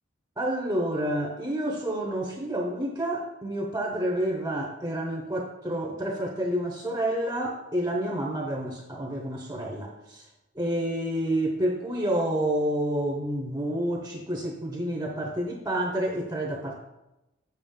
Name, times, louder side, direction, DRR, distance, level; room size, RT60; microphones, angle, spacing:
voice 1, 0.4-10.2 10.5-16.8, right 1 dB, 15° right, 0 dB, 0.7 m, -29 dB
7.1 x 5.8 x 3.7 m, 0.95 s
head